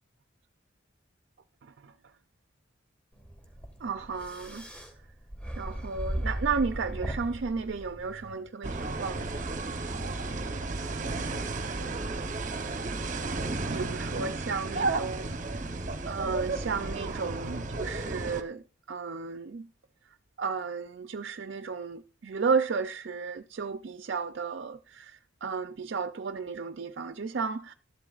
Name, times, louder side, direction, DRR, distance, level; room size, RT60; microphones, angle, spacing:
sound 1, 3.2-8.4, right 1 dB, 5° left, 1.6 m, -37 dB
voice 1, 3.8-4.7 5.6-9.3 13.7-15.4 16.1-19.7 20.4-27.7, right 5 dB, 60° right, 0.4 m, -33 dB
sound 2, 8.6-18.4, right 3 dB, 40° right, 0.8 m, -33 dB
13.0 x 11.5 x 2.4 m
head